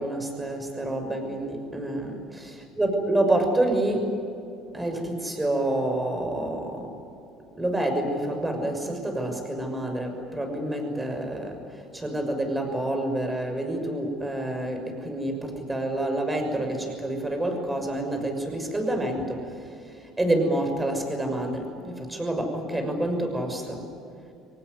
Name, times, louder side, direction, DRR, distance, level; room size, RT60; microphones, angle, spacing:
voice 1, 0.0-2.5 2.8-4.1 4.7-7.0 7.6-11.6 11.9-19.6 20.2-23.8, right 1 dB, 15° right, 5 dB, 6.2 m, -28 dB
24.5 x 19.0 x 9.7 m, 2.6 s
supercardioid pair, 100°, 0 cm